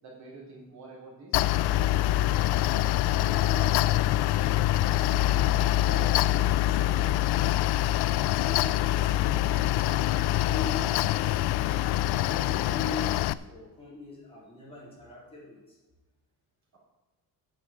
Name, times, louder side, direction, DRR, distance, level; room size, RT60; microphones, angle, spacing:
voice 1, 0.0-1.5 4.8-5.0, right 3 dB, 45° right, -4 dB, 3.9 m, -49 dB
Mechanical fan, 1.3-13.3, left 14 dB, 80° left, 0.5 m, -25 dB
voice 2, 3.1-4.2 4.6-7.7 8.2-11.7 12.1-15.8, left 3 dB, 15° left, -6 dB, 3.9 m, -42 dB
9.4 x 7.3 x 7.6 m, 1.1 s
cardioid pair, 170°, 39 cm